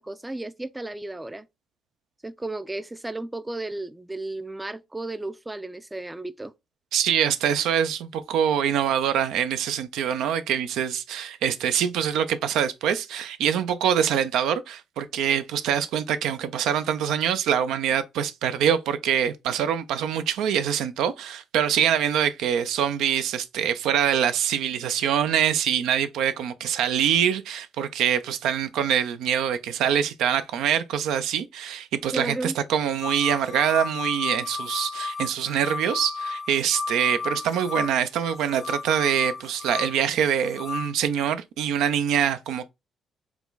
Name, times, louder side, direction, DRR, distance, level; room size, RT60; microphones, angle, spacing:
voice 1, 0.0-1.5 2.2-6.5 32.1-32.6, right 2 dB, 15° right, 0.3 m, -33 dB
voice 2, 6.9-42.7, right 9 dB, 85° right, 0.4 m, -24 dB
sound 1, 33.0-40.9, left 4 dB, 50° left, 0.5 m, -33 dB
4.7 x 2.2 x 3.8 m
cardioid pair, 90°, 0 cm